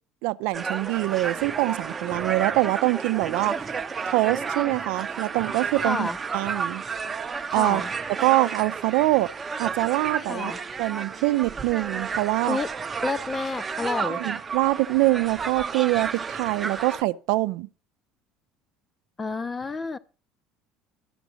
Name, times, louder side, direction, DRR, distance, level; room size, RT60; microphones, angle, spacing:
voice 1, 0.2-3.5 4.1-6.8 7.5-7.8 8.2-9.3 9.6-10.5 10.8-12.6 14.0-17.7, right 20 dB, 75° right, 0.5 m, -24 dB
sound 1, 0.5-17.0, right 5 dB, 25° right, 0.7 m, -32 dB
voice 2, 5.8-6.2 7.5-7.9 10.3-10.6 12.5-12.7 13.0-14.2 19.2-20.0, left 3 dB, 25° left, 0.7 m, -29 dB
12.5 x 5.0 x 7.0 m
supercardioid pair, 105°, 0 cm